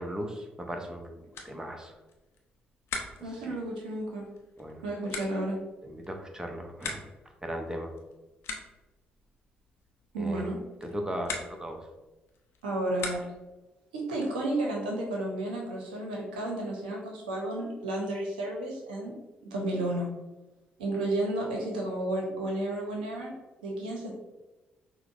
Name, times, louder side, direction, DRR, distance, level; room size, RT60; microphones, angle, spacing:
voice 1, 0.0-1.9 3.2-3.6 4.6-4.8 5.8-7.0 7.4-7.9 10.2-10.5 10.8-11.8, equal, 15° right, 3 dB, 0.7 m, -37 dB
sound 1, 1.2-13.6, left 4 dB, 65° left, 0.5 m, -44 dB
voice 2, 3.2-4.2 4.8-5.6 10.1-10.6 12.6-13.2 13.9-19.1 19.5-20.1 20.8-23.3 23.6-24.1, right 1 dB, 85° right, -1 dB, 0.6 m, -32 dB
5.9 x 2.0 x 2.5 m, 1.1 s
hypercardioid pair, 45°, 5 cm